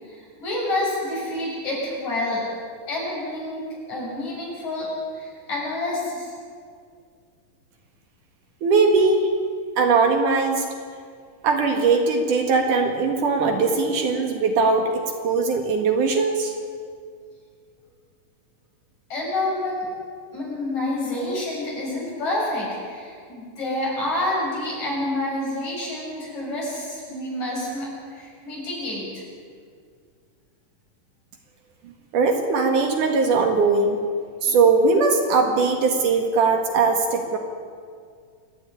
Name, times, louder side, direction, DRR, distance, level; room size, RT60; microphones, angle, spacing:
voice 1, 0.0-2.4 2.9-3.6 3.9-4.9 5.1-6.3 19.1-19.9 20.3-29.2, left 1 dB, 50° left, -4 dB, 8.3 m, -28 dB
voice 2, 8.6-9.3 9.8-10.7 11.4-16.5 32.1-34.0 34.4-37.4, right 4 dB, 65° right, 4 dB, 3.1 m, -20 dB
27.0 x 11.5 x 10.0 m, 2.1 s
omnidirectional pair, 4.2 m